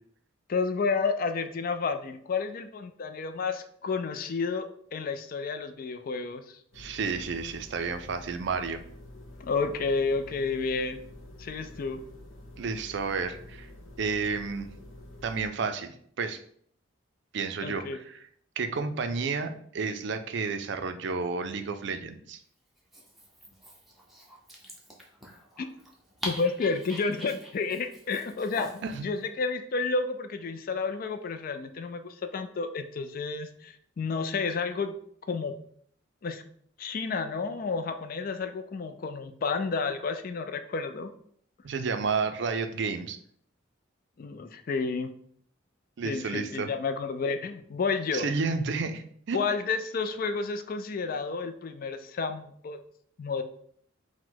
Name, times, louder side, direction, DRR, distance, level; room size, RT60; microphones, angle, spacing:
voice 1, 0.5-6.6 9.4-11.0 11.4-12.0 17.6-18.0 25.6-25.7 26.2-35.0 35.3-35.5 36.2-36.4 36.8-41.1 44.2-45.1 46.0-48.3 49.3-52.8 53.2-53.4, left 4 dB, 45° left, 8 dB, 0.4 m, -31 dB
sound 1, 6.7-15.5, left 1 dB, 80° left, 0.9 m, -48 dB
voice 2, 6.8-8.8 12.6-13.7 14.0-14.7 15.2-16.4 17.3-18.2 18.6-22.4 28.8-29.1 41.6-43.2 46.0-46.7 48.1-49.4, right 4 dB, 60° right, 8 dB, 0.4 m, -31 dB
Dog, 22.8-29.0, equal, ahead, 0.7 m, -43 dB
4.6 x 2.1 x 3.9 m, 0.63 s
head